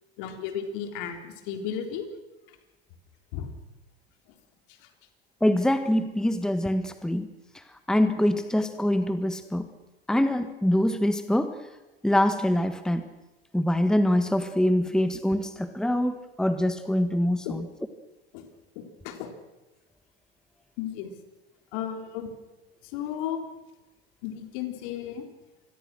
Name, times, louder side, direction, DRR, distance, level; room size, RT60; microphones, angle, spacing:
voice 1, 0.2-2.1 3.3-3.5 17.5-17.6 18.3-18.4 18.8-19.3 20.8-21.1 21.7-22.3 22.9-23.4 24.2-25.3, left 9 dB, 55° left, 7 dB, 3.9 m, -34 dB
voice 2, 5.4-7.3 7.5-9.7 10.1-11.6 12.0-13.1 13.5-17.7, left 1 dB, ahead, 10 dB, 1.5 m, -24 dB
27.5 x 21.0 x 6.3 m, 1.1 s
hypercardioid pair, 85°, 31 cm